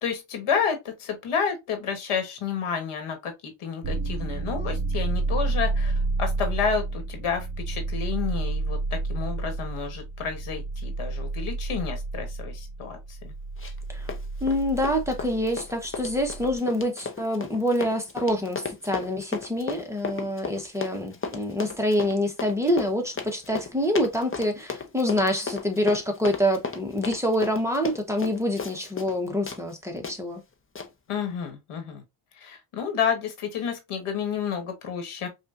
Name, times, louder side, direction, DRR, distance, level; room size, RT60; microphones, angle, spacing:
voice 1, 0.0-13.3 31.1-32.0 32.4-35.3, left 6 dB, 90° left, 1.5 m, -30 dB
sound 1, 3.8-16.6, right 3 dB, 40° right, 0.8 m, -30 dB
Run, 13.6-13.8 14.1-29.2 29.5-29.6 30.0-30.2 30.8-30.9, left 5 dB, 25° left, 0.8 m, -35 dB
voice 2, 14.4-30.4, equal, 5° right, 1.0 m, -26 dB
5.3 x 2.5 x 2.5 m
cardioid pair, 95°, 49 cm